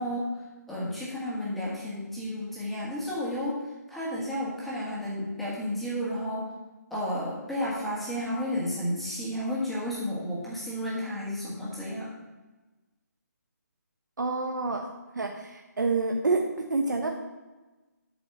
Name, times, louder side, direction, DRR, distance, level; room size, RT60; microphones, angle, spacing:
voice 1, 0.0-6.5 6.9-12.1, equal, ahead, -8 dB, 1.7 m, -32 dB
voice 2, 14.2-14.9 15.1-17.1, right 3 dB, 85° right, 3 dB, 1.1 m, -28 dB
8.2 x 5.2 x 7.5 m, 1.2 s
hypercardioid pair, 165°, 10 cm